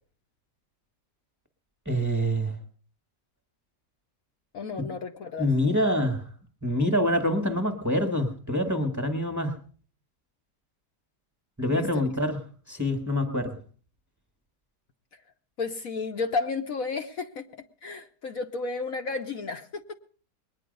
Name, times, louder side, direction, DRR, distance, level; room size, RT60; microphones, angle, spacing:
voice 1, 1.8-2.6 4.8-4.9 5.4-6.2 6.6-9.6 11.6-12.4 12.7-13.6, equal, 10° right, 7 dB, 1.3 m, -26 dB
voice 2, 4.5-5.5 11.7-12.1 15.6-17.4 17.8-19.8, left 4 dB, 60° left, 5 dB, 1.2 m, -32 dB
21.5 x 9.8 x 5.3 m, 0.44 s
omnidirectional pair, 1.8 m